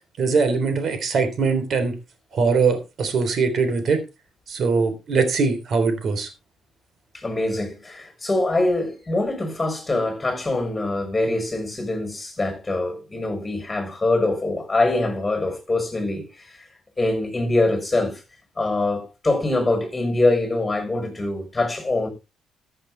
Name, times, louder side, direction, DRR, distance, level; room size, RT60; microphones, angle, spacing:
voice 1, 0.2-1.9 2.3-4.0 4.5-6.3, right 4 dB, 60° right, 3.5 m, -21 dB
voice 2, 7.1-16.3 17.0-18.2 18.6-22.1, left 2 dB, 20° left, 6.5 m, -24 dB
14.5 x 8.0 x 3.3 m
cardioid pair, 90°, 0 cm